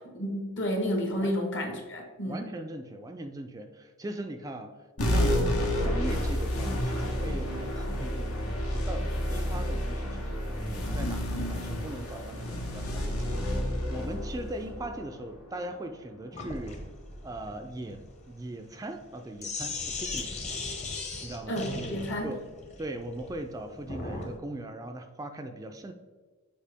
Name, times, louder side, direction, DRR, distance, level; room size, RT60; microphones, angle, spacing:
voice 1, 0.1-2.4 21.5-22.3, equal, 55° left, 2 dB, 1.3 m, -31 dB
voice 2, 2.3-16.8 17.2-20.6 21.2-21.6 22.2-22.4 22.8-25.9, right 1 dB, 15° right, 6 dB, 0.3 m, -40 dB
sound 1, 5.0-15.8, equal, 85° left, 1.3 m, -30 dB
Sink (filling or washing), 16.3-24.4, left 3 dB, 30° left, 0.9 m, -38 dB
7.3 x 4.5 x 3.4 m, 1.4 s
head